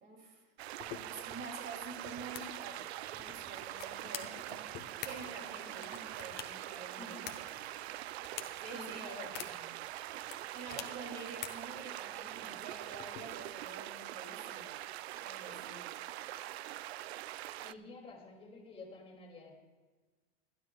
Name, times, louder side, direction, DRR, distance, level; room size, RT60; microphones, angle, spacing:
voice 1, 0.0-0.4 1.1-7.2 8.6-9.2 10.5-14.7 15.1-15.9, right 3 dB, 35° right, 2 dB, 2.6 m, -48 dB
sound 1, 0.6-17.7, right 14 dB, 90° right, 0.5 m, -44 dB
sound 2, 0.8-13.6, left 10 dB, 35° left, 1.1 m, -50 dB
voice 2, 7.0-7.3 8.7-9.7 17.6-19.5, left 3 dB, 20° left, 1 dB, 2.5 m, -50 dB
23.0 x 11.5 x 2.3 m, 1.3 s
supercardioid pair, 145°, 31 cm